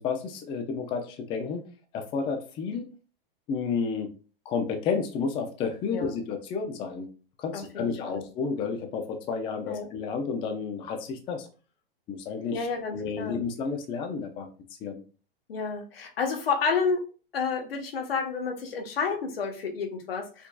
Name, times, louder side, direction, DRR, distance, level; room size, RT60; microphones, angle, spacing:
voice 1, 0.0-1.6 1.9-2.8 3.5-4.1 4.5-7.1 7.4-11.5 12.1-14.5 14.8-15.0, left 5 dB, 20° left, 5 dB, 0.4 m, -31 dB
voice 2, 7.5-8.2 9.7-9.9 12.5-13.4 15.5-17.0 17.3-20.5, left 5 dB, 85° left, 3 dB, 1.1 m, -30 dB
4.5 x 2.7 x 2.3 m, 0.36 s
hypercardioid pair, 135°, 29 cm